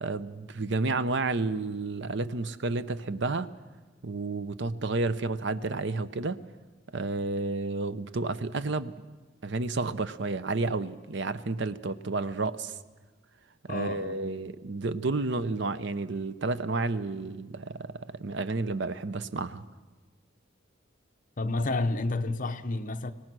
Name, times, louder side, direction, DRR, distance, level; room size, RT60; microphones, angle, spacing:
voice 1, 0.0-3.5 4.0-6.4 6.9-8.9 9.4-12.7 13.6-19.6, right 3 dB, 70° right, 0.8 m, -31 dB
voice 2, 13.7-14.2 21.4-23.1, left 2 dB, 45° left, 0.9 m, -30 dB
25.5 x 18.5 x 6.2 m
head